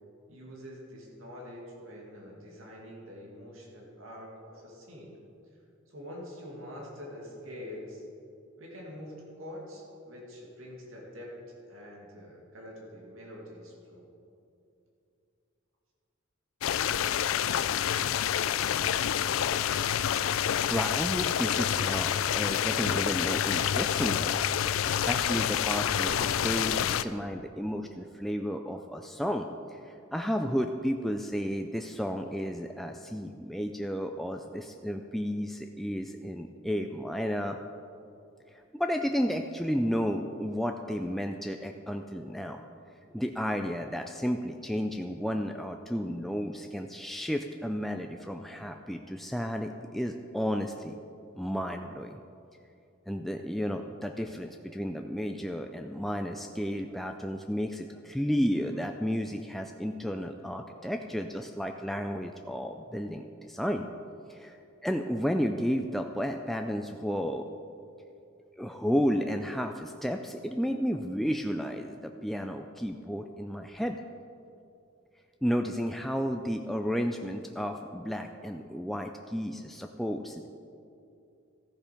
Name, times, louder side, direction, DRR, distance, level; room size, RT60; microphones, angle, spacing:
voice 1, 0.3-5.2 5.9-8.0 8.6-11.3 11.7-14.1, left 1 dB, 90° right, -2 dB, 2.3 m, -45 dB
sound 1, 16.6-27.0, left 9 dB, 80° left, 0.4 m, -28 dB
voice 2, 20.7-24.4 24.9-37.6 38.5-42.6 43.1-51.0 51.4-52.2 53.1-63.9 64.3-64.6 64.8-67.5 68.6-74.0 75.4-80.5, equal, ahead, 4 dB, 0.3 m, -32 dB
14.5 x 7.2 x 5.1 m, 2.6 s
head